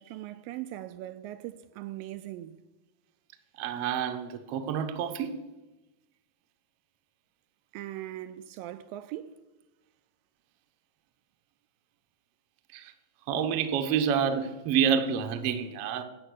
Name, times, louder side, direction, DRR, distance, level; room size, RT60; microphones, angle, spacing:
voice 1, 0.0-2.6 7.7-9.4, right 14 dB, 80° right, 2.2 m, -40 dB
voice 2, 3.6-5.3 12.7-12.9 13.3-16.0, right 7 dB, 65° right, 1.5 m, -28 dB
13.0 x 8.9 x 8.1 m
omnidirectional pair, 4.2 m